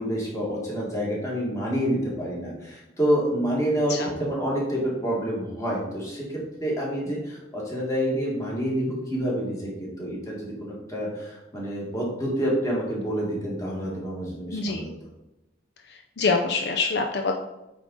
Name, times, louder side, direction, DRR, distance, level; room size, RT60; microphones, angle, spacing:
voice 1, 0.0-14.9, equal, 15° left, -5 dB, 1.8 m, -28 dB
voice 2, 14.5-14.8 16.2-17.4, left 4 dB, 60° left, 4 dB, 0.5 m, -25 dB
8.2 x 3.8 x 4.0 m, 0.95 s
head